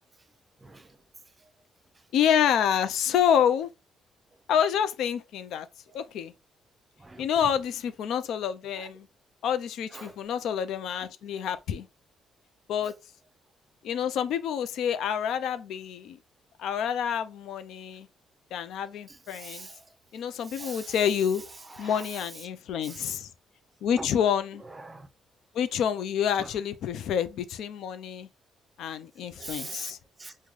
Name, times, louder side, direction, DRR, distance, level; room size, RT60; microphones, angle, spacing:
voice 1, 0.6-1.0 1.4-1.5 5.9-6.0 7.0-7.5 8.8-8.9 9.9-10.2 13.9-14.0 19.1-19.9 20.4-21.0 21.6-22.2 22.8-23.2 24.0-24.1 24.6-25.1 26.4-26.5 29.3-30.4, right 2 dB, 25° right, 0.5 m, -43 dB
voice 2, 2.1-3.7 4.5-5.7 5.9-6.3 7.2-9.1 9.4-11.9 12.7-12.9 13.8-16.2 16.6-18.1 18.5-19.7 20.1-21.4 21.8-23.3 23.8-24.6 25.5-28.3 28.8-30.0, left 8 dB, 80° left, 0.4 m, -28 dB
3.7 x 2.1 x 3.0 m
cardioid pair, 90°, 0 cm